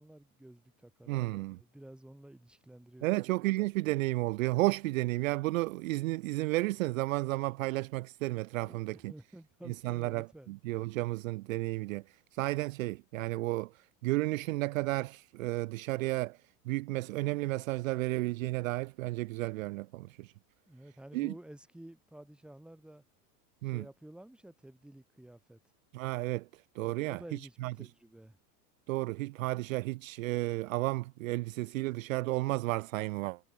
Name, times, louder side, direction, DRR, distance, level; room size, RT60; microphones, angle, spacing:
voice 1, 0.0-3.2 8.6-10.5 20.7-23.0 23.6-25.6 26.8-28.4, right 1 dB, ahead, 6.4 m, -52 dB
voice 2, 1.1-1.6 3.0-9.1 9.8-12.0 12.4-13.7 14.0-16.4 16.7-20.3 21.1-21.3 23.6-23.8 25.9-26.4 26.8-27.2 27.6-27.7 28.9-33.4, right 20 dB, 60° right, 0.6 m, -32 dB
supercardioid pair, 175°, 47 cm